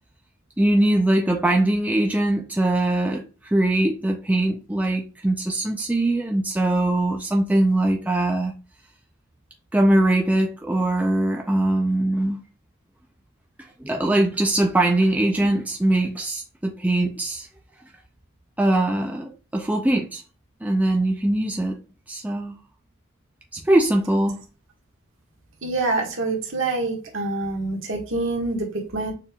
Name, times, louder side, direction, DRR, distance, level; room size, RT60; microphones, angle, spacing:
voice 1, 0.6-8.5 9.7-12.4 13.8-17.5 18.6-20.2 20.6-21.8 22.1-22.6 23.5-24.4, right 1 dB, 5° right, 0.4 m, -21 dB
voice 2, 25.6-29.1, right 2 dB, 60° right, 1.5 m, -26 dB
6.6 x 3.5 x 2.3 m
head